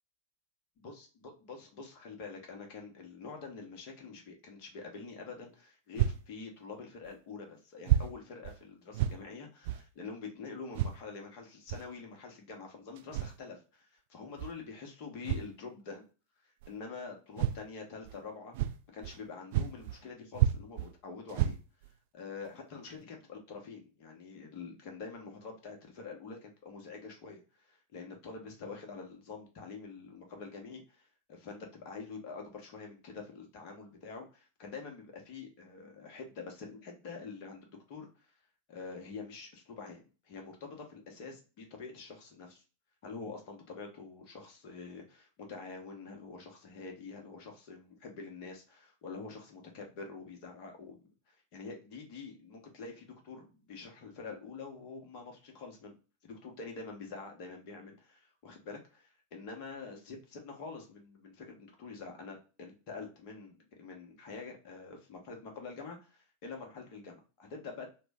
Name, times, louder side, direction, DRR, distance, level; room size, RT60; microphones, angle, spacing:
voice 1, 1.5-16.1 16.7-21.6 22.1-38.3 38.7-42.6 43.0-55.9 56.2-67.9, left 4 dB, 45° left, 2 dB, 1.0 m, -46 dB
sound 1, 5.9-6.2 7.0-7.1 7.8-8.1 8.4-8.6 8.9-9.2 9.6-9.8 10.7-11.0 11.7-11.9 13.0-13.4 14.4-14.5 15.2-15.5 16.6-16.7 17.4-17.6 18.0-18.2 18.5-19.2 19.5-20.0 20.3-20.9 21.3-21.9 22.4-22.5 23.0-23.1, right 11 dB, 50° right, 0.3 m, -30 dB
3.1 x 2.1 x 3.3 m, 0.34 s
figure-of-eight pair, 90°, 0 cm